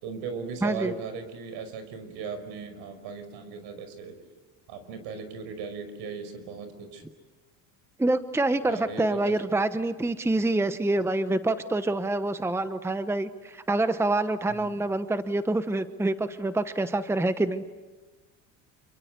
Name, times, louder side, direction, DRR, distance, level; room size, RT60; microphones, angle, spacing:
voice 1, 0.0-4.2 4.7-7.0 8.6-9.4 14.5-14.8, right 5 dB, 70° right, 10 dB, 5.5 m, -37 dB
voice 2, 0.6-0.9 8.0-17.6, right 2 dB, 5° right, 11 dB, 1.0 m, -26 dB
28.0 x 24.0 x 8.3 m, 1.3 s
supercardioid pair, 95°, 41 cm